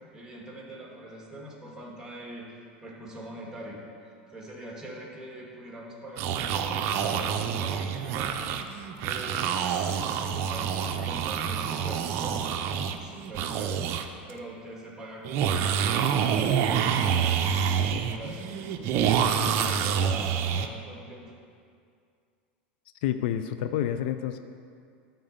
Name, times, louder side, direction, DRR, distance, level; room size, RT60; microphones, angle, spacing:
voice 1, 0.0-8.4 8.9-19.0 19.4-21.3, right 1 dB, 10° right, -2 dB, 1.9 m, -43 dB
sound 1, 6.2-14.1 14.3-14.4 15.2-20.7, right 8 dB, 50° right, 0.5 m, -27 dB
voice 2, 23.0-24.4, left 10 dB, 65° left, 10 dB, 0.4 m, -28 dB
8.6 x 4.0 x 6.7 m, 2.3 s
hypercardioid pair, 100°, 6 cm